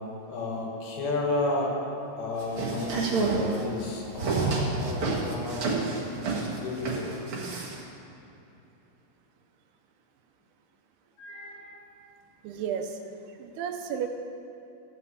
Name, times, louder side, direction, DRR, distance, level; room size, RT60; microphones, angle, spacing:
voice 1, 0.3-1.8 2.2-5.8 6.3-7.2 11.2-11.9, left 2 dB, 75° left, -1 dB, 3.5 m, -32 dB
sound 1, 2.4-7.8, right 3 dB, 60° right, 1.4 m, -29 dB
voice 2, 12.4-13.0 13.4-14.1, right 8 dB, 90° right, 5 dB, 2.7 m, -32 dB
14.5 x 5.9 x 8.3 m, 2.8 s
omnidirectional pair, 4.6 m